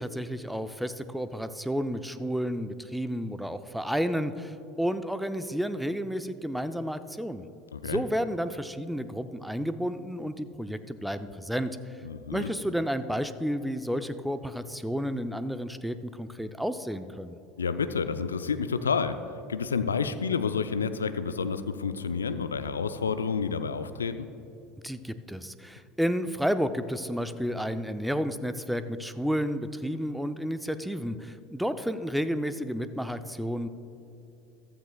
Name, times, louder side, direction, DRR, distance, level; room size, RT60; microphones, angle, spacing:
voice 1, 0.0-7.4 7.8-11.8 12.3-17.4 24.8-33.7, equal, ahead, 11 dB, 0.6 m, -31 dB
voice 2, 7.7-8.0 12.0-12.5 17.6-19.2 19.5-24.3, left 5 dB, 85° left, 11 dB, 0.4 m, -29 dB
15.0 x 13.0 x 2.3 m, 2.9 s
figure-of-eight pair, 75°, 0 cm